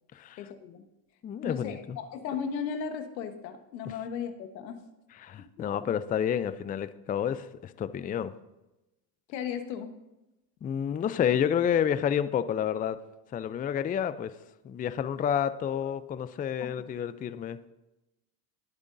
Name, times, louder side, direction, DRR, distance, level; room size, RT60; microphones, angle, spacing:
voice 1, 0.4-0.9 1.4-4.8 5.4-5.9 9.3-10.0 16.6-16.7, left 7 dB, 90° left, 7 dB, 1.4 m, -36 dB
voice 2, 1.2-2.0 5.2-8.3 10.6-13.0 13.3-14.3 14.6-17.6, left 9 dB, 20° left, 14 dB, 0.4 m, -29 dB
20.5 x 8.1 x 2.6 m, 0.97 s
hypercardioid pair, 90°, 50 cm